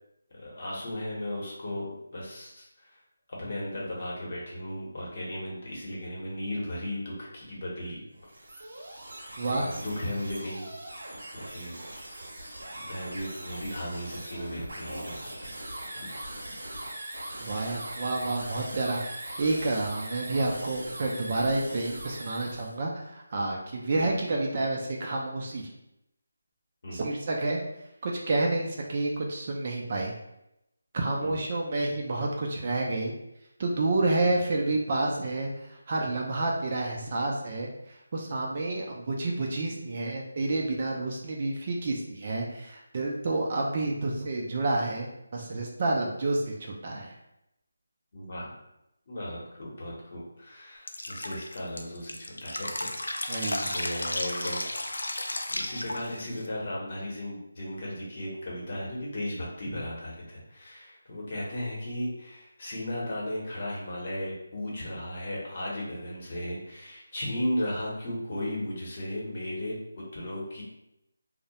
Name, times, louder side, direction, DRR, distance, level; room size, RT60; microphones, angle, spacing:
voice 1, 0.3-2.9 3.3-8.0 9.5-10.7 11.0-11.8 12.9-15.6 15.9-16.1 23.9-24.2 26.8-27.0 31.2-31.4 34.2-34.3 48.1-48.5 49.1-55.1 55.5-69.8 70.1-70.6, left 1 dB, 40° left, -4 dB, 0.8 m, -36 dB
sound 1, 8.1-22.8, right 1 dB, 70° right, 0.7 m, -41 dB
voice 2, 17.4-25.7 26.9-27.6 28.0-30.1 30.9-33.1 33.6-47.1 53.3-53.7, right 2 dB, 35° right, -1 dB, 0.3 m, -29 dB
Drip, 50.9-56.5, left 1 dB, 90° left, 0.3 m, -33 dB
2.2 x 2.0 x 2.8 m, 0.85 s
figure-of-eight pair, 170°, 0 cm